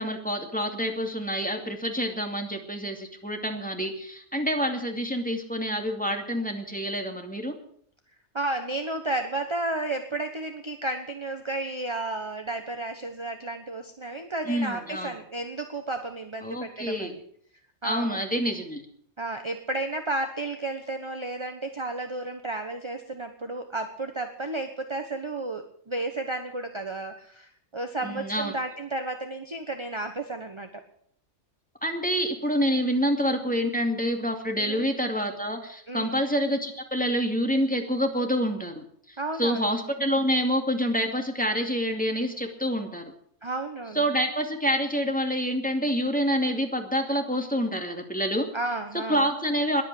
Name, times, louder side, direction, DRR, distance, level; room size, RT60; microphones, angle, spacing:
voice 1, 0.0-7.6 14.5-15.1 16.4-17.1 17.8-18.8 28.0-28.5 31.8-43.1 43.9-48.5 48.9-49.8, equal, 5° left, 3 dB, 2.4 m, -27 dB
voice 2, 8.3-17.2 17.8-18.2 19.2-30.8 32.7-32.9 34.6-34.8 35.9-36.2 39.2-39.7 43.4-44.1 48.5-49.3, right 2 dB, 25° right, 6 dB, 1.2 m, -32 dB
21.0 x 8.5 x 7.8 m, 0.62 s
omnidirectional pair, 1.3 m